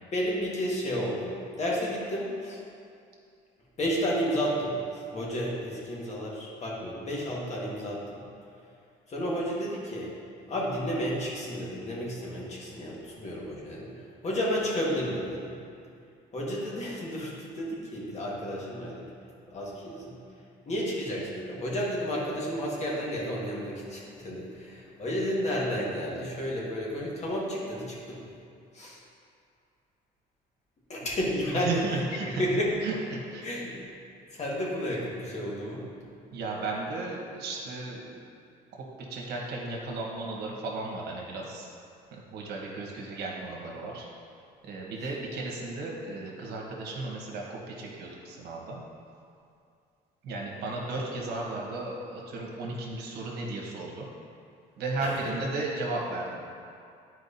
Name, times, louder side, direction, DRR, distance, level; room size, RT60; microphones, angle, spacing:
voice 1, 0.1-2.6 3.8-8.3 9.1-10.1 10.5-15.6 16.3-19.1 19.5-20.2 20.6-28.2 28.7-29.0 30.9-31.8 32.2-32.7 33.4-33.8 34.3-35.9 55.0-55.3, equal, 40° left, -4 dB, 1.6 m, -32 dB
voice 2, 31.5-32.4 32.8-33.5 36.3-38.2 38.7-38.8 39.1-41.7 42.1-44.1 44.6-48.8 50.2-54.1 54.8-56.4, right 3 dB, 75° right, -2 dB, 1.3 m, -35 dB
10.0 x 4.6 x 2.7 m, 2.4 s
cardioid pair, 110°, 17 cm